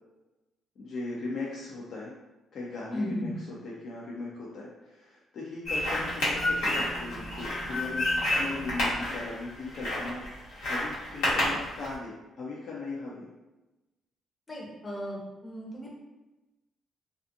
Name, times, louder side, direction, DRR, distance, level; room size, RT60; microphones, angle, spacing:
voice 1, 0.8-2.1 2.5-8.1 8.3-10.2 10.6-13.3, left 3 dB, 60° left, -5 dB, 0.5 m, -38 dB
voice 2, 2.9-3.3 14.5-15.9, equal, 20° left, -4 dB, 0.7 m, -35 dB
sound 1, 5.7-11.9, left 1 dB, 90° left, 1.1 m, -30 dB
2.5 x 2.4 x 2.6 m, 1.1 s
cardioid pair, 90°, 0 cm